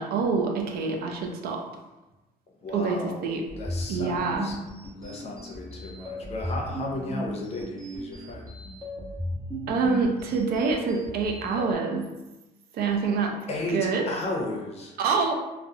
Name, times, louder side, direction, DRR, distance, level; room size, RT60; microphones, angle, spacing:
voice 1, 0.0-1.6 2.7-3.4 3.9-4.5 9.7-12.1 12.7-13.4 13.7-14.0 15.0-15.3, right 4 dB, 65° right, 2 dB, 0.4 m, -26 dB
voice 2, 2.6-4.6 4.9-8.5 13.5-15.0, left 2 dB, 40° left, -1 dB, 0.6 m, -34 dB
sound 1, 3.5-11.7, equal, 20° right, 0.9 m, -36 dB
2.3 x 2.1 x 2.7 m, 1.1 s
cardioid pair, 110°, 17 cm